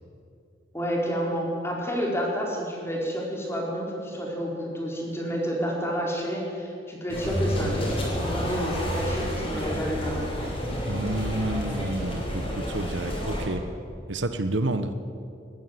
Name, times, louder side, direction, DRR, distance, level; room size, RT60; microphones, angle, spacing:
voice 1, 0.7-10.5, equal, 15° left, -2 dB, 4.5 m, -30 dB
sound 1, 7.1-13.5, equal, 30° left, 6.5 m, -30 dB
voice 2, 10.9-13.6 14.1-14.9, right 1 dB, 75° right, 10 dB, 1.1 m, -29 dB
20.0 x 14.5 x 9.6 m, 2.5 s
head